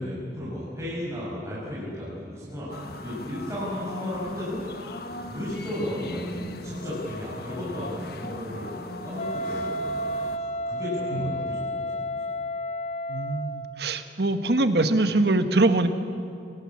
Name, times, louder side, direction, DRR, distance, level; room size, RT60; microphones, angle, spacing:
voice 1, 0.0-4.9 5.3-10.0 10.3-11.8 12.1-12.2, left 1 dB, 15° right, -8 dB, 6.6 m, -34 dB
sound 1, 2.7-10.4, left 2 dB, 60° left, 1.5 m, -39 dB
Wind instrument woodwind instrument, 9.1-13.8, equal, 40° left, 0.8 m, -31 dB
voice 2, 13.1-15.9, right 2 dB, 65° right, 8 dB, 1.4 m, -23 dB
26.5 x 18.5 x 8.6 m, 2.6 s
head